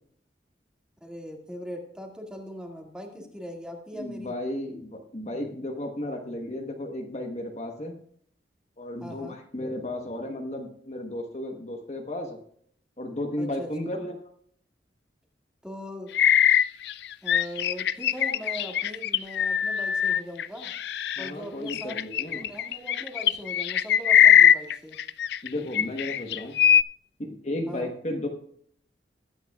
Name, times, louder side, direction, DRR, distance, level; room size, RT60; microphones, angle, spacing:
voice 1, 1.0-4.4 9.0-9.4 13.4-13.7 15.6-16.1 17.2-20.7 21.2-22.0 22.3-25.0 27.7-27.9, equal, 5° right, 0 dB, 2.0 m, -40 dB
voice 2, 3.9-8.0 8.8-12.4 13.0-14.3 21.2-22.5 25.4-26.6 27.2-28.3, left 1 dB, 40° left, 3 dB, 1.2 m, -34 dB
sound 1, 16.1-21.3 21.7-25.5 25.7-26.8, left 9 dB, 60° left, 0.4 m, -21 dB
21.0 x 9.1 x 2.3 m, 0.63 s
head